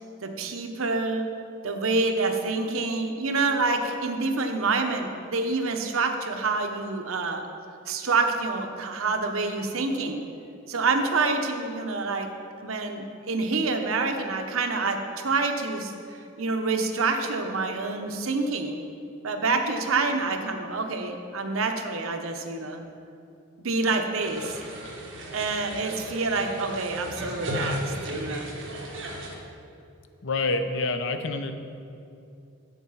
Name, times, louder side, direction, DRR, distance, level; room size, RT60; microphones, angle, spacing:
voice 1, 0.2-1.3 1.6-7.5 7.9-10.2 10.7-12.3 12.6-18.8 19.2-22.8 23.6-24.6 25.3-28.5, right 3 dB, 80° right, 5 dB, 0.9 m, -27 dB
sound 1, 24.2-29.3, right 1 dB, 65° right, 1.5 m, -35 dB
voice 2, 30.2-31.5, left 3 dB, 60° left, 7 dB, 0.7 m, -27 dB
8.2 x 7.1 x 5.7 m, 2.6 s
head